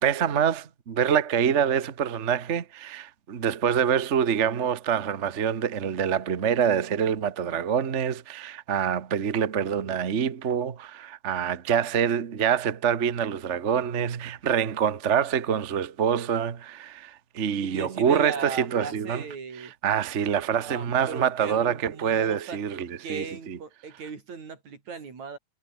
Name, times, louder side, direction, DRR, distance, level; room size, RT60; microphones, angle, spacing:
voice 1, 0.0-19.2 19.6-23.6, right 8 dB, 50° right, 0.8 m, -26 dB
voice 2, 17.6-19.7 20.6-22.6 23.0-25.4, right 5 dB, 70° right, 5.4 m, -37 dB
omnidirectional pair, 3.4 m